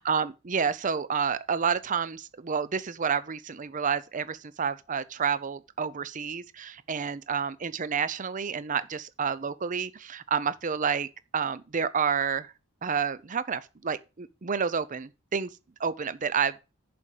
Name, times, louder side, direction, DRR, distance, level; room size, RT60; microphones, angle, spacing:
voice 1, 0.0-12.5 12.8-15.5 15.8-16.5, right 6 dB, 35° right, 0.5 m, -29 dB
7.0 x 5.1 x 6.5 m
head